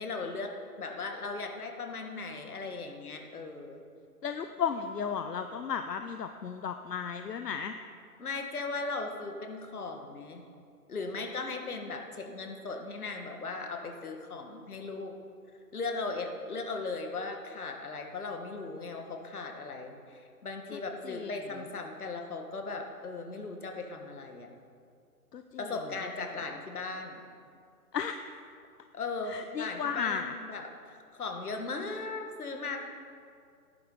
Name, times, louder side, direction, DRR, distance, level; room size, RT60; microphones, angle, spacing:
voice 1, 0.0-3.8 8.2-10.4 10.9-15.2 15.7-24.5 25.6-27.2 28.9-32.8, left 3 dB, 65° left, 4 dB, 1.8 m, -38 dB
voice 2, 4.2-7.7 20.7-20.8 21.0-21.3 25.3-25.7 27.9-28.2 29.3-30.3, left 7 dB, 80° left, 8 dB, 0.8 m, -34 dB
17.5 x 11.0 x 4.0 m, 2.3 s
hypercardioid pair, 170°, 48 cm